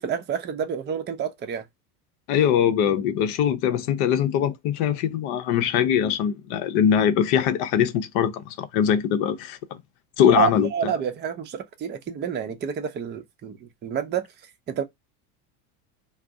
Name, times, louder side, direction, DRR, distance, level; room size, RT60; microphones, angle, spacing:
voice 1, 0.0-1.7 10.3-14.3 14.7-14.8, right 8 dB, 25° right, 0.5 m, -28 dB
voice 2, 2.3-9.8 10.2-10.9, left 9 dB, 55° left, 0.7 m, -22 dB
2.5 x 2.0 x 3.5 m
hypercardioid pair, 85°, 46 cm